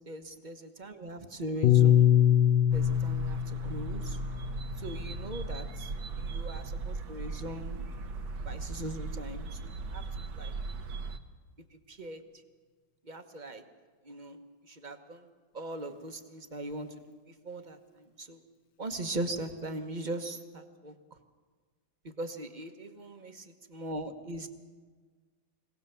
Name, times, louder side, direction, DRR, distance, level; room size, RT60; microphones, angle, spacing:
voice 1, 0.1-2.1 2.7-4.2 4.8-5.9 6.2-7.8 8.4-10.0 10.3-10.5 11.9-12.2 13.1-13.6 14.1-14.4 14.7-15.3 15.5-16.9 17.4-18.4 18.8-20.9 22.2-24.5, right 1 dB, 30° right, 6 dB, 1.1 m, -40 dB
Piano, 1.6-6.1, left 11 dB, 75° left, 1.6 m, -25 dB
sound 1, 2.7-11.2, right 3 dB, 65° right, 1.7 m, -38 dB
24.5 x 18.0 x 7.0 m, 1.5 s
omnidirectional pair, 2.1 m